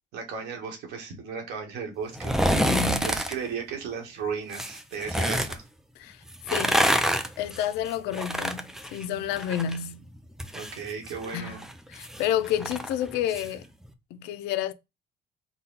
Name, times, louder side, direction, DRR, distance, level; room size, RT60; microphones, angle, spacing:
voice 1, 0.1-2.7 3.0-5.6 10.5-11.6, right 6 dB, 85° right, 1.4 m, -35 dB
sound 1, 2.1-3.3 4.5-5.6 6.3-9.8 10.1-13.5 13.8-13.9, equal, 5° right, 0.4 m, -27 dB
voice 2, 2.5-3.1 6.0-6.8 7.4-10.0 11.3-11.6 11.9-13.6 14.1-14.7, left 10 dB, 90° left, 0.4 m, -30 dB
4.0 x 2.2 x 3.8 m
cardioid pair, 110°, 17 cm